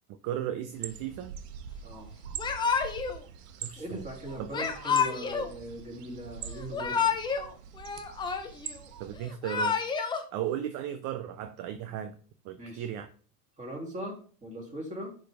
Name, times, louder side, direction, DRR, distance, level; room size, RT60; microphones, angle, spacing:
voice 1, 0.1-1.3 3.6-4.0 4.4-4.5 9.0-9.8 10.3-12.1 12.4-13.1, right 10 dB, 45° right, 10 dB, 0.6 m, -35 dB
sound 1, 0.7-9.2, right 8 dB, 80° right, 1.0 m, -44 dB
Yell / Crying sobbing, 2.4-3.2 4.5-5.5 6.6-7.5 7.8-8.7 9.3-10.2, left 6 dB, 10° left, 0.4 m, -29 dB
voice 2, 3.8-7.1 12.6-12.9 13.6-15.1, right 1 dB, 15° right, -1 dB, 2.3 m, -40 dB
10.0 x 3.4 x 3.3 m, 0.42 s
supercardioid pair, 120°, 47 cm